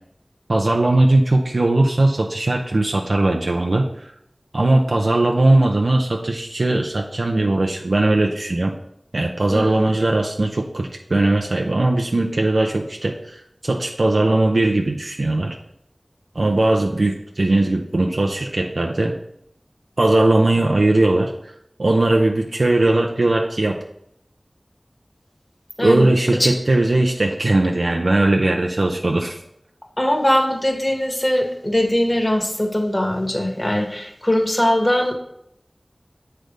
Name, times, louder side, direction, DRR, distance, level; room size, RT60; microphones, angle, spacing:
voice 1, 0.5-4.1 4.5-8.7 9.1-15.6 16.3-19.2 20.0-21.5 21.8-23.8 25.8-29.4, right 2 dB, 80° right, 1 dB, 0.6 m, -19 dB
voice 2, 25.8-26.1 26.4-26.5 30.0-35.1, left 1 dB, 25° left, 2 dB, 1.3 m, -20 dB
7.8 x 3.4 x 5.1 m, 0.75 s
wide cardioid pair, 50°, 0 cm